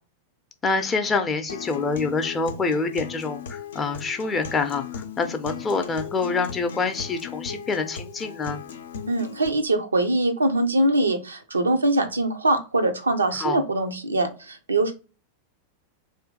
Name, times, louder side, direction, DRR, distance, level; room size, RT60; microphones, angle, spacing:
voice 1, 0.6-8.6 13.4-13.6, left 4 dB, 20° left, 6 dB, 0.5 m, -26 dB
Acoustic guitar, 1.5-9.5, left 7 dB, 65° left, 0.5 m, -37 dB
voice 2, 9.1-14.9, right 2 dB, 75° right, 6 dB, 0.5 m, -23 dB
2.7 x 2.5 x 3.7 m, 0.33 s
figure-of-eight pair, 90°, 0 cm